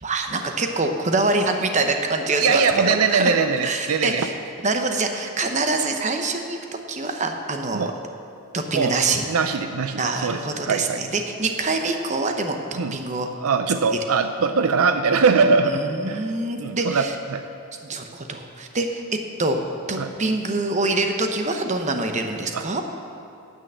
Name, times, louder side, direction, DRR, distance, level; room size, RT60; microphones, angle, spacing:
voice 1, 0.0-3.3 3.6-4.3 4.6-7.9 8.5-9.2 10.0-13.3 13.9-14.0 15.6-17.2 17.8-19.0 19.4-19.6 19.9-22.8, right 3 dB, 30° right, 5 dB, 0.8 m, -25 dB
voice 2, 2.4-4.3 7.7-7.9 8.7-8.9 9.3-11.0 12.8-13.0 13.4-16.2 16.6-17.1 17.3-17.4 20.0-20.1 22.5-22.8, right 5 dB, 70° right, 8 dB, 0.5 m, -21 dB
9.6 x 8.3 x 8.0 m, 2.5 s
head